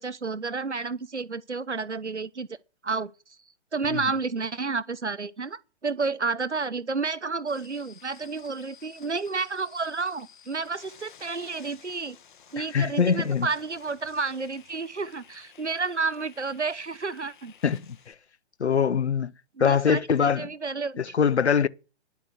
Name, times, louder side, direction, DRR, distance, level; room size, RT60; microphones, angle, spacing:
voice 1, 0.0-2.5 2.8-3.1 3.7-12.2 12.5-17.5 19.6-21.1, right 4 dB, 85° right, 1.1 m, -31 dB
sound 1, 7.5-18.1, left 8 dB, 45° left, 1.8 m, -53 dB
voice 2, 12.6-13.5 17.6-17.8 18.1-18.2 18.6-19.3 19.6-20.5 21.0-21.7, left 6 dB, 75° left, 0.8 m, -23 dB
10.5 x 8.3 x 8.3 m
figure-of-eight pair, 130°, 34 cm